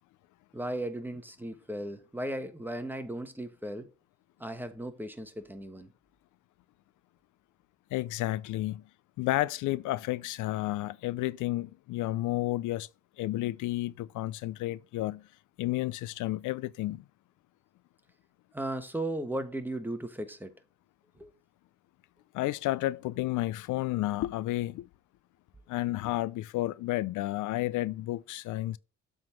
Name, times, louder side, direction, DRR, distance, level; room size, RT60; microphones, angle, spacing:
voice 1, 0.5-3.9 4.4-5.9 18.5-20.5 21.2-21.3, right 1 dB, 5° right, 1.2 m, -36 dB
voice 2, 7.9-8.8 9.2-12.9 13.2-15.3 15.6-17.0 22.3-24.9 25.7-28.8, left 16 dB, 80° left, 0.5 m, -31 dB
7.6 x 3.8 x 5.7 m
cardioid pair, 90°, 30 cm